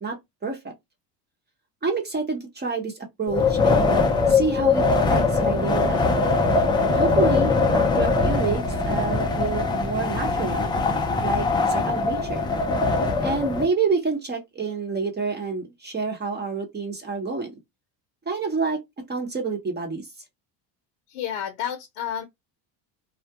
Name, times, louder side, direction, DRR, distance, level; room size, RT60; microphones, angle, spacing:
voice 1, 0.0-0.7 1.8-4.0 4.3-6.1 6.8-10.7 11.2-12.4 13.2-17.5 18.3-18.8 19.1-20.1, right 4 dB, 20° right, 0.8 m, -28 dB
Wind, 3.3-13.6, left 3 dB, 10° left, 0.3 m, -22 dB
voice 2, 21.1-22.3, left 10 dB, 65° left, 0.7 m, -30 dB
2.3 x 2.1 x 2.7 m
supercardioid pair, 105°, 48 cm